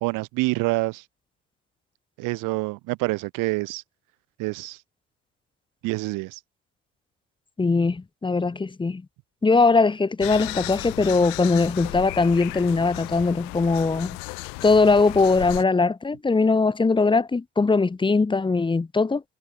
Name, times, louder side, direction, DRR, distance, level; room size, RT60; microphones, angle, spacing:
voice 1, 0.0-1.0 2.2-3.8 4.4-4.8 5.8-6.4, right 23 dB, 70° right, 0.8 m, -27 dB
voice 2, 7.6-9.0 9.4-14.2 14.6-19.2, left 4 dB, 15° left, 0.8 m, -21 dB
sound 1, 10.2-15.6, left 40 dB or more, 80° left, 2.5 m, -35 dB
hypercardioid pair, 60°, 34 cm